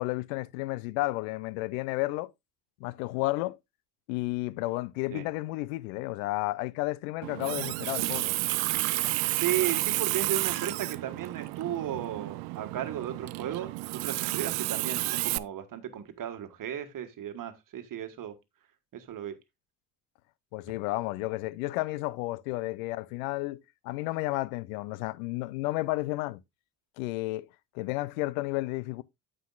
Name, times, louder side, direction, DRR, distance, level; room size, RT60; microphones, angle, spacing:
voice 1, 0.0-2.3 2.8-3.6 4.1-8.3 20.5-26.4 27.0-27.5 27.7-29.0, left 19 dB, 70° left, 0.6 m, -32 dB
Water tap faucet, 7.2-15.4, right 24 dB, 60° right, 0.5 m, -31 dB
voice 2, 9.3-18.4 18.9-19.4, right 10 dB, 45° right, 1.5 m, -35 dB
9.2 x 8.2 x 2.3 m
hypercardioid pair, 55°, 44 cm